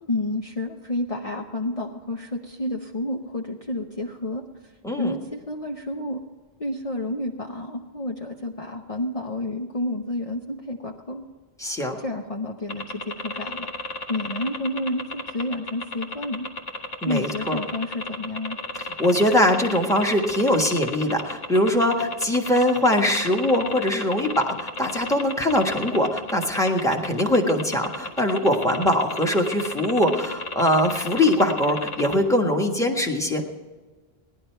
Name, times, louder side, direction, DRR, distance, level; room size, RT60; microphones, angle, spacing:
voice 1, 0.0-4.4 5.0-6.2 6.6-11.2 12.0-13.7 14.1-16.5 17.0-18.6, left 1 dB, 35° left, 1 dB, 0.9 m, -30 dB
voice 2, 11.6-12.0 17.0-17.6 18.8-33.4, left 1 dB, 5° left, 2 dB, 1.4 m, -22 dB
sound 1, 12.7-32.2, left 2 dB, 75° left, 1.6 m, -32 dB
17.5 x 11.0 x 4.5 m, 1.4 s
omnidirectional pair, 1.0 m